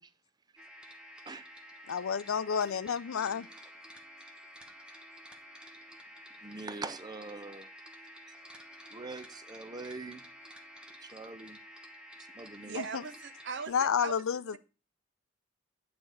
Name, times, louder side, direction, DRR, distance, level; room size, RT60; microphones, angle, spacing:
sound 1, 0.6-13.7, equal, 5° right, 0.9 m, -51 dB
voice 1, 1.9-3.5 13.7-14.6, left 7 dB, 85° left, 0.5 m, -30 dB
voice 2, 6.4-7.6 8.9-10.2 11.1-11.6 12.4-12.8, right 3 dB, 20° right, 0.5 m, -42 dB
voice 3, 12.6-14.6, right 5 dB, 60° right, 0.7 m, -41 dB
9.4 x 3.4 x 6.2 m
head